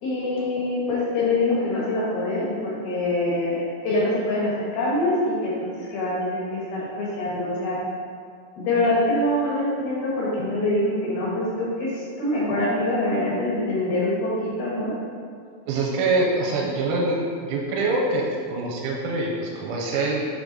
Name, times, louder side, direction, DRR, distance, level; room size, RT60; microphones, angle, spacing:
voice 1, 0.0-5.5 5.9-7.8 8.6-14.9, left 1 dB, 65° left, -6 dB, 2.6 m, -24 dB
voice 2, 15.7-17.2 17.4-20.3, right 2 dB, 85° right, -2 dB, 3.1 m, -24 dB
8.6 x 3.6 x 3.9 m, 2.2 s
omnidirectional pair, 5.5 m